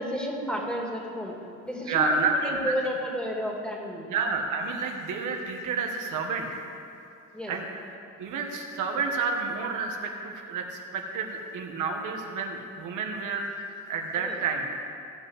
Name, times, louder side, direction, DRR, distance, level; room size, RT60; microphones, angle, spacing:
voice 1, 0.0-1.4 1.6-2.1 2.4-4.1 7.3-7.5 14.2-14.4, equal, 5° left, -1 dB, 2.4 m, -31 dB
voice 2, 1.9-2.7 4.1-6.5 7.5-7.6 8.2-13.5 13.9-14.7, right 4 dB, 85° right, 2 dB, 1.5 m, -29 dB
16.0 x 5.4 x 8.2 m, 2.6 s
cardioid pair, 90°, 30 cm